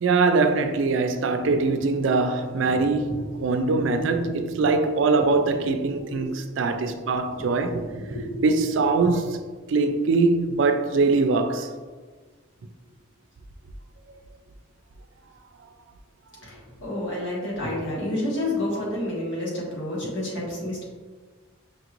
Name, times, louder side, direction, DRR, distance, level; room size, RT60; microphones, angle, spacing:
voice 1, 0.0-8.0 8.4-9.3 9.7-11.7, right 3 dB, 80° right, 0.4 m, -22 dB
voice 2, 2.8-3.2 3.5-3.7 4.0-4.1 4.5-4.7 5.2-5.3 6.0-6.2 7.3-8.5 9.0-9.1 16.4-20.8, left 1 dB, 80° left, 1.4 m, -31 dB
5.2 x 2.5 x 3.0 m
head